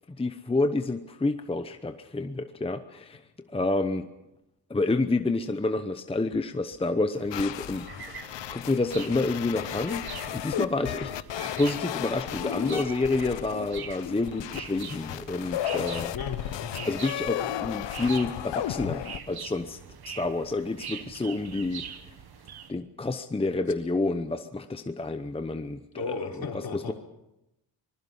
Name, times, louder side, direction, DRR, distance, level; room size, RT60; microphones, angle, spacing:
voice 1, 0.1-3.2 3.5-4.0 4.7-7.8 8.5-10.0 10.3-11.1 11.6-16.1 16.8-19.8 20.2-21.8 22.7-26.2 26.7-26.9, left 2 dB, 15° left, 8 dB, 0.8 m, -28 dB
sound 1, 7.1-22.7, right 7 dB, 55° right, 1.4 m, -44 dB
sound 2, 7.3-19.2, left 12 dB, 75° left, 1.0 m, -34 dB
voice 2, 16.1-16.9 25.9-26.9, left 5 dB, 55° left, 2 dB, 3.9 m, -35 dB
25.5 x 21.0 x 5.5 m, 0.89 s
cardioid pair, 120°, 44 cm